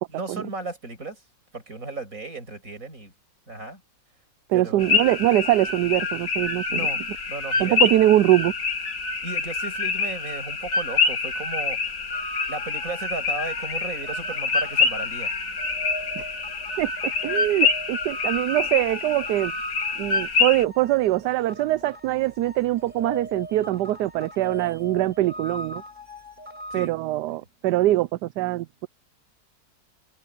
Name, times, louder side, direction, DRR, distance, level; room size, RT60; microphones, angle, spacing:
voice 1, 0.1-1.2 1.5-3.1 3.5-3.8 4.5-4.9 6.7-7.8 9.2-12.1 12.5-15.3 26.7-26.9, right 3 dB, 50° right, 6.4 m, -35 dB
voice 2, 4.5-6.9 7.6-8.5 16.2-16.3 16.8-19.5 20.0-25.8 26.7-28.9, right 15 dB, 75° right, 1.1 m, -23 dB
sound 1, 4.8-20.6, left 4 dB, 80° left, 3.0 m, -26 dB
sound 2, 12.1-26.9, equal, 25° right, 6.2 m, -40 dB
omnidirectional pair, 1.9 m